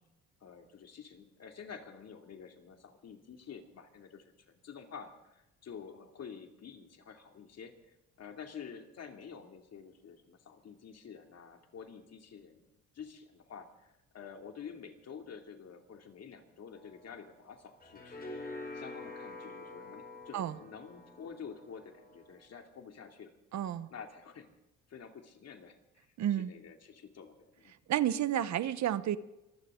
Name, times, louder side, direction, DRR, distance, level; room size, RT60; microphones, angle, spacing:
voice 1, 0.4-18.2 18.7-23.3 23.9-24.5 24.9-27.7, left 6 dB, 55° left, 2.6 m, -49 dB
sound 1, 16.7-22.3, left 2 dB, 30° left, 6.3 m, -47 dB
voice 2, 23.5-23.9 26.2-26.5 27.9-29.2, right 11 dB, 65° right, 1.0 m, -31 dB
24.5 x 16.0 x 3.8 m
cardioid pair, 90°, 30 cm